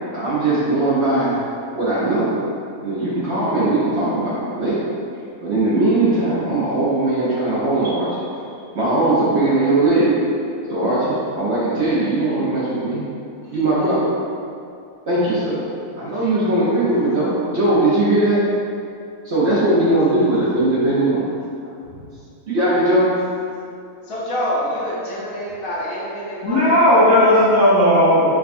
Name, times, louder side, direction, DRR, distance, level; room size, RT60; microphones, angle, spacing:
voice 1, 0.1-1.4 1.8-2.3 2.8-4.8 5.4-8.2 8.7-10.1 10.7-13.0 13.5-14.1 15.1-15.6 16.0-18.4 19.2-21.3 22.5-23.2, right 2 dB, 60° right, -9 dB, 0.8 m, -19 dB
voice 2, 24.1-26.7, equal, 70° left, -7 dB, 1.2 m, -26 dB
voice 3, 26.4-28.3, equal, 75° right, -14 dB, 2.2 m, -14 dB
4.7 x 2.3 x 2.5 m, 2.5 s
omnidirectional pair, 1.5 m